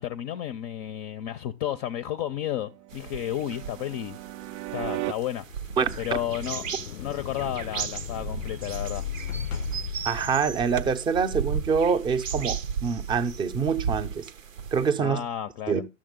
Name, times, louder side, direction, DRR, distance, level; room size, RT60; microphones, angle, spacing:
voice 1, 0.0-4.2 4.7-5.4 6.0-6.7 7.0-9.1 15.0-15.8, left 11 dB, 35° left, 0.5 m, -32 dB
sound 1, 2.3-5.1 8.1-9.3, right 17 dB, 65° right, 0.5 m, -38 dB
sound 2, 2.9-14.9, right 7 dB, 85° right, 0.9 m, -35 dB
sound 3, 5.5-11.1, left 9 dB, 90° left, 0.5 m, -37 dB
voice 2, 10.0-14.3 14.7-15.2 15.7-15.8, right 6 dB, 15° right, 0.5 m, -25 dB
11.5 x 7.4 x 3.7 m
hypercardioid pair, 110°, 38 cm